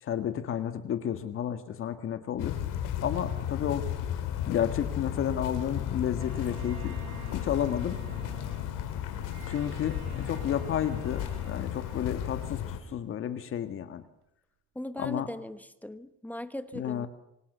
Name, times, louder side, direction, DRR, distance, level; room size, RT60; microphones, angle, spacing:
voice 1, 0.0-2.6 3.0-3.9 4.4-7.0 7.3-8.0 9.5-14.0 15.0-15.3 16.7-17.1, left 9 dB, 45° left, 9 dB, 1.8 m, -31 dB
sound 1, 2.4-12.8, left 10 dB, 85° left, 3.8 m, -34 dB
Bowed string instrument, 6.2-13.5, right 9 dB, 70° right, 3.3 m, -51 dB
voice 2, 14.7-17.1, left 1 dB, 5° left, 11 dB, 1.0 m, -39 dB
28.0 x 24.5 x 6.8 m, 0.85 s
cardioid pair, 165°, 30 cm